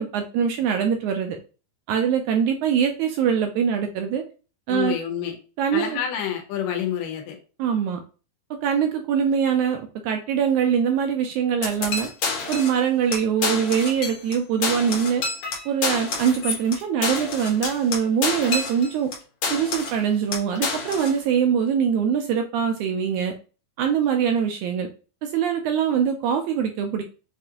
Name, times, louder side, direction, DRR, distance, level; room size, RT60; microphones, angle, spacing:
voice 1, 0.0-1.4 1.9-4.2 4.7-5.0 5.6-6.0 7.6-8.0 8.6-12.1 12.5-15.2 15.7-19.1 19.5-23.3 23.8-24.9 25.2-27.0, right 7 dB, 80° right, 5 dB, 1.8 m, -23 dB
voice 2, 4.7-5.4 5.7-7.4, left 9 dB, 85° left, 4 dB, 2.6 m, -28 dB
sound 1, 11.6-12.8 13.1-13.2 13.4-14.4 14.6-19.2 19.4-20.0 20.3-21.2, left 4 dB, 65° left, 2.3 m, -28 dB
6.6 x 2.5 x 2.8 m, 0.35 s
omnidirectional pair, 3.8 m